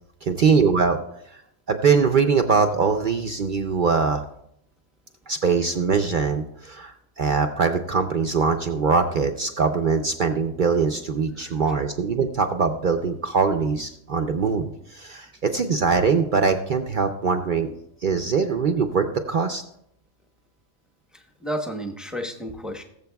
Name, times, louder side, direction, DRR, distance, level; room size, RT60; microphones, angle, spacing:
voice 1, 0.2-1.0 1.7-4.2 5.3-17.7 18.0-19.6, right 5 dB, 55° right, 6 dB, 0.6 m, -22 dB
voice 2, 11.3-11.8 21.1-22.8, equal, ahead, 3 dB, 0.8 m, -32 dB
20.0 x 7.5 x 2.3 m, 0.75 s
omnidirectional pair, 1.3 m